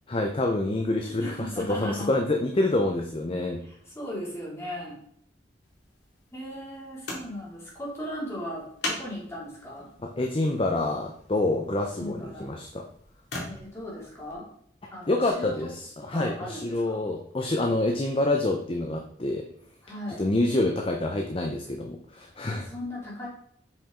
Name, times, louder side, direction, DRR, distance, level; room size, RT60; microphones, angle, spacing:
voice 1, 0.1-3.6 10.0-12.9 15.1-19.4 20.2-22.7, left 2 dB, 30° left, 3 dB, 0.6 m, -27 dB
voice 2, 1.1-2.1 3.6-5.0 6.3-9.9 12.0-12.5 13.5-14.5 14.9-15.7 16.1-17.0 19.8-20.2 22.5-23.3, equal, 15° left, -6 dB, 2.8 m, -37 dB
sound 1, 5.6-14.3 15.3-15.4, left 2 dB, 65° left, 2.3 m, -42 dB
7.5 x 5.2 x 3.8 m, 0.65 s
head